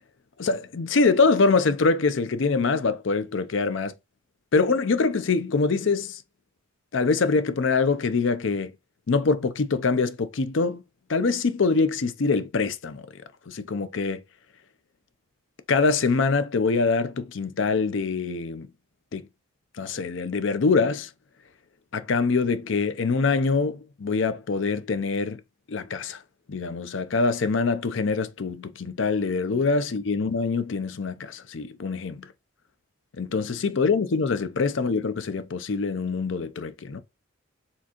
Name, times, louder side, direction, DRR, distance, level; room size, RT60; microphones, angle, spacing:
voice 1, 0.4-3.9 4.5-6.2 6.9-8.7 9.1-10.8 11.1-13.0 13.5-14.2 15.7-18.7 19.1-19.3 19.8-21.1 21.9-25.4 25.7-26.2 26.5-32.3 33.2-37.0, left 4 dB, 65° left, 0.5 m, -24 dB
4.4 x 3.5 x 2.9 m
head